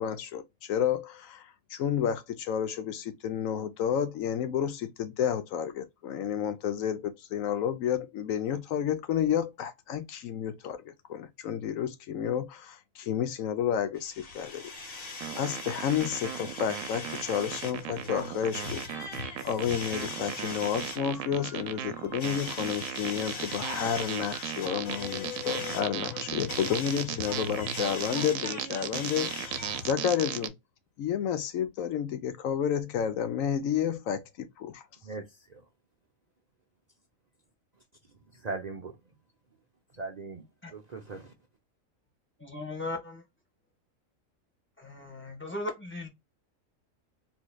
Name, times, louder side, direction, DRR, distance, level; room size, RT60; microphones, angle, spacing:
voice 1, 0.0-18.8 19.4-30.5 31.0-34.8, left 9 dB, 80° left, 1.1 m, -31 dB
sound 1, 14.0-29.9, left 4 dB, 45° left, 1.4 m, -40 dB
sound 2, 15.2-30.5, right 11 dB, 80° right, 1.0 m, -36 dB
voice 2, 35.0-35.6 38.3-39.0 39.9-41.3, right 3 dB, 40° right, 0.6 m, -39 dB
voice 3, 42.4-43.2 44.8-46.1, left 2 dB, 10° left, 1.4 m, -37 dB
4.0 x 3.0 x 2.2 m
omnidirectional pair, 1.4 m